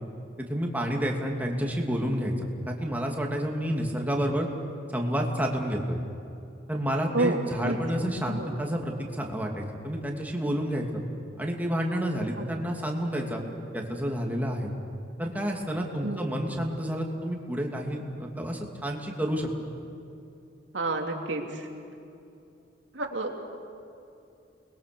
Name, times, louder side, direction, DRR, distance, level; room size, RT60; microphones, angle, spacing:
voice 1, 0.5-2.3 2.7-4.5 4.9-6.0 6.7-11.0 11.4-13.4 13.7-14.7 15.2-19.5, equal, 10° right, 0 dB, 2.6 m, -29 dB
voice 2, 7.1-7.8 8.3-8.5 12.4-12.5 16.0-16.2 20.7-21.6 22.9-23.3, right 2 dB, 75° right, 2 dB, 2.7 m, -29 dB
30.0 x 21.5 x 6.9 m, 2.8 s
head